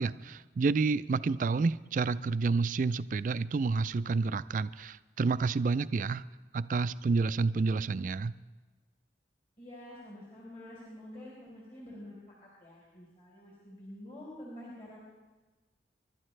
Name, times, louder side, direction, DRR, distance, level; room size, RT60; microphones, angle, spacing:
voice 1, 0.0-6.3 6.5-8.3, right 4 dB, 50° right, 15 dB, 0.4 m, -29 dB
voice 2, 9.6-15.0, left 1 dB, 40° left, -5 dB, 4.1 m, -48 dB
29.0 x 12.0 x 3.3 m, 1.2 s
head